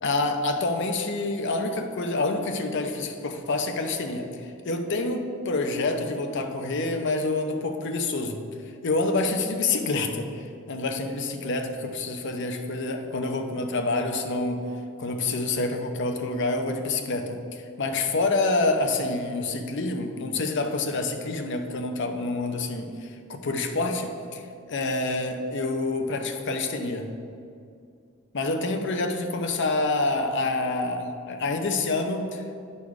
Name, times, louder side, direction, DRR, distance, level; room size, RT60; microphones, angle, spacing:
voice 1, 0.0-8.4 8.8-10.3 10.7-14.6 15.0-27.1 28.3-32.4, left 2 dB, 60° left, 5 dB, 0.7 m, -27 dB
9.9 x 4.3 x 4.7 m, 2.4 s
head